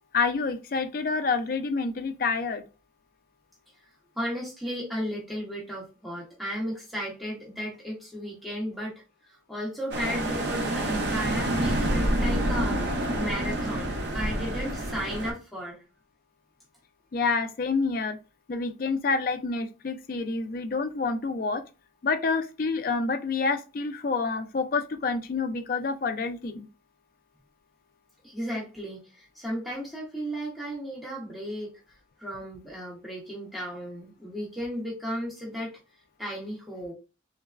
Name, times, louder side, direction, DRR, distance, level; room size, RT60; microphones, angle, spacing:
voice 1, 0.1-2.6 17.1-18.2 18.5-21.6 22.0-26.7, left 4 dB, 50° left, 0.3 m, -28 dB
voice 2, 4.2-8.9 9.3-12.8 13.2-15.8 28.2-31.8 32.2-35.7 36.2-36.9, equal, ahead, 0.8 m, -34 dB
sound 1, 9.9-15.3, right 1 dB, 65° right, 0.5 m, -28 dB
3.1 x 2.0 x 2.3 m
head